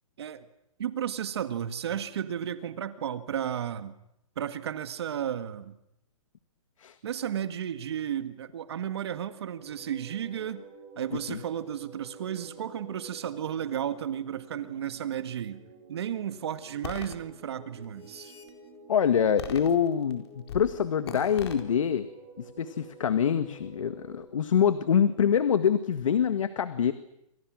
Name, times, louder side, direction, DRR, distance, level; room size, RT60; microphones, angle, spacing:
voice 1, 0.8-3.9 4.4-5.7 7.0-10.6 11.0-15.6 15.9-18.3, right 9 dB, 45° right, 11 dB, 1.8 m, -33 dB
sound 1, 9.2-24.2, right 3 dB, 20° right, 7.9 m, -51 dB
sound 2, 16.8-17.2 17.8-18.5 19.4-20.1 20.5-20.7 21.1-21.6, left 6 dB, 50° left, 4.3 m, -39 dB
voice 2, 18.9-22.1 22.4-26.9, left 8 dB, 65° left, 11 dB, 1.8 m, -25 dB
29.0 x 26.0 x 6.3 m, 0.83 s
hypercardioid pair, 175°, 18 cm